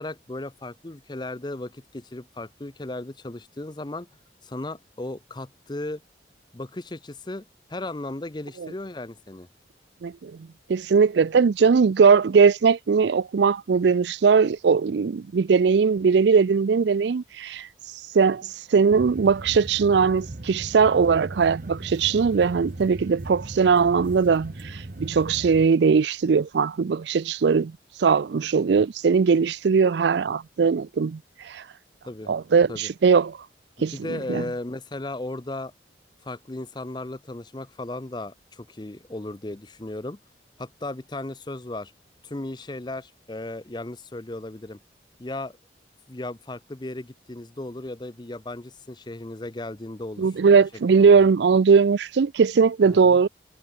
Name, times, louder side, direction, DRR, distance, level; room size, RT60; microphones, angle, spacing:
voice 1, 0.0-4.1 4.4-6.0 6.5-7.4 7.7-9.5 32.0-32.3 32.7-32.9 33.9-35.7 36.2-40.2 40.6-41.9 42.2-44.8 45.2-45.6 46.1-50.3 50.9-51.3 52.9-53.2, left 2 dB, 25° left, 0.7 m, -35 dB
voice 2, 10.0-10.3 10.7-17.7 18.1-27.7 28.0-31.2 31.4-31.6 32.3-33.4 33.8-33.9 34.3-34.4 50.2-53.3, right 5 dB, 70° right, 0.4 m, -20 dB
sound 1, 18.9-25.7, right 2 dB, 45° right, 0.9 m, -38 dB
head